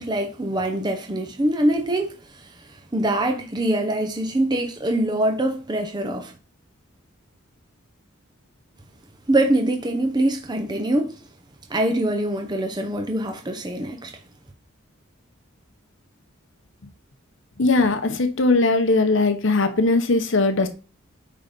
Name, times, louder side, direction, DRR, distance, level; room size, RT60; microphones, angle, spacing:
voice 1, 0.0-2.5 2.9-6.3 9.3-11.2 11.7-14.2, right 1 dB, 20° right, 0.9 m, -24 dB
voice 2, 17.6-20.7, left 3 dB, 60° left, 0.9 m, -19 dB
8.9 x 4.0 x 5.3 m
head